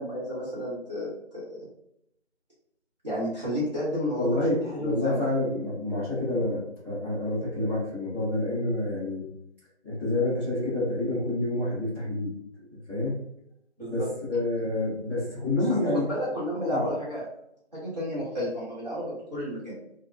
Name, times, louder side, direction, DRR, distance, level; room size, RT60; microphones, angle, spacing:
voice 1, 0.0-1.4 3.0-4.3 4.6-5.3 13.8-14.1 15.9-17.2 17.7-19.7, equal, 40° right, -9 dB, 1.1 m, -31 dB
voice 2, 4.1-9.2 9.8-12.3 12.7-13.2 13.8-16.1 16.6-16.9, left 2 dB, 10° right, -19 dB, 1.1 m, -28 dB
2.8 x 2.1 x 2.2 m, 0.75 s
figure-of-eight pair, 165°, 34 cm